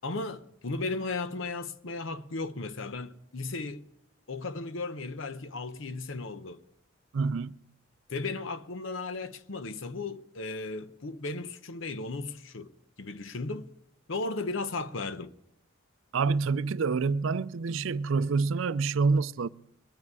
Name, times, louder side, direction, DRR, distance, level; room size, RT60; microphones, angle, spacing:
voice 1, 0.0-3.8 4.3-6.6 8.1-12.7 13.0-13.7 14.1-15.3, left 3 dB, 70° left, 0.8 m, -35 dB
voice 2, 7.1-7.5 16.1-19.5, right 4 dB, 75° right, 0.4 m, -27 dB
22.0 x 9.8 x 4.7 m
head